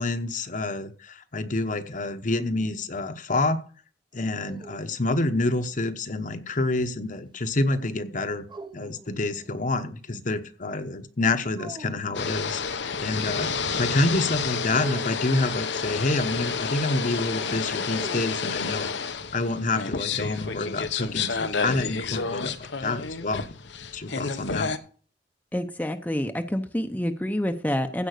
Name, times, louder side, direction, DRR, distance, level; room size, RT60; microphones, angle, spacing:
voice 1, 0.0-3.6 4.1-8.5 8.7-23.5 23.9-24.7, left 2 dB, 45° left, 9 dB, 1.0 m, -28 dB
sound 1, 4.2-6.0 8.5-9.7 11.5-12.3 14.8-15.8 17.9-19.1, right 3 dB, 25° right, 0.8 m, -45 dB
sound 2, 12.1-24.8, left 5 dB, 85° left, 1.0 m, -30 dB
voice 2, 25.5-28.1, left 1 dB, 10° left, 6 dB, 0.7 m, -28 dB
15.5 x 5.2 x 6.6 m, 0.42 s
head